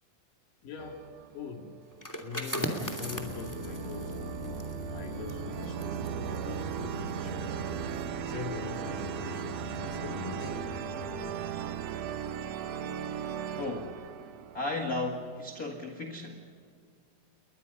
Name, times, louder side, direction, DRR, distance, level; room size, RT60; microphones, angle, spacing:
voice 1, 0.6-1.0 1.3-1.7 2.2-4.6 4.9-7.8 8.2-10.8, left 5 dB, 70° left, 3 dB, 3.9 m, -43 dB
sound 1, 0.8-2.0 2.6-15.2, right 9 dB, 70° right, 1.5 m, -37 dB
sound 2, 1.9-7.4 7.8-8.0, equal, 5° left, 2.0 m, -39 dB
sound 3, 3.0-11.3, left 11 dB, 85° left, 2.4 m, -44 dB
voice 2, 13.6-14.0 14.5-16.4, left 2 dB, 35° left, 2 dB, 1.6 m, -35 dB
30.0 x 22.5 x 5.5 m, 2.1 s
omnidirectional pair, 4.0 m